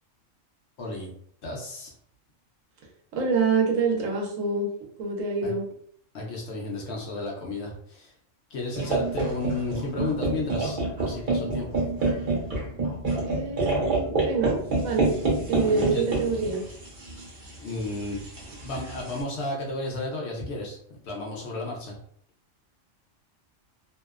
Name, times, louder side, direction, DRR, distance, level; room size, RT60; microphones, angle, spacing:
voice 1, 0.8-1.1 1.4-1.9 5.4-5.5 6.1-8.1 8.5-11.8 15.6-16.0 17.2-17.3 17.6-18.2 18.6-20.8 21.0-22.0, left 2 dB, 65° left, -1 dB, 0.9 m, -33 dB
voice 2, 3.1-4.7 5.0-5.7 13.3-14.6 14.8-15.2 15.5-16.6, right 4 dB, 90° right, 0 dB, 1.1 m, -26 dB
sound 1, 8.8-19.2, right 2 dB, 50° right, 0.7 m, -28 dB
2.7 x 2.0 x 2.3 m, 0.64 s
omnidirectional pair, 1.3 m